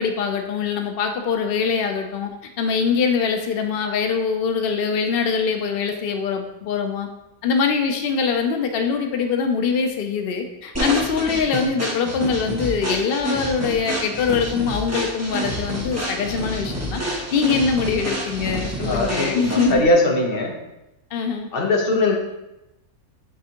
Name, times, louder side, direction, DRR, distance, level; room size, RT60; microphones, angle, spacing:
voice 1, 0.0-2.3 2.6-7.1 7.4-17.0 17.3-19.8 21.1-21.5, left 5 dB, 80° left, 5 dB, 0.5 m, -23 dB
sound 1, 10.7-19.9, equal, 10° right, 1.0 m, -28 dB
voice 2, 18.8-20.5 21.5-22.2, left 2 dB, 45° left, 0 dB, 1.1 m, -20 dB
9.8 x 3.3 x 2.9 m, 0.93 s
omnidirectional pair, 1.6 m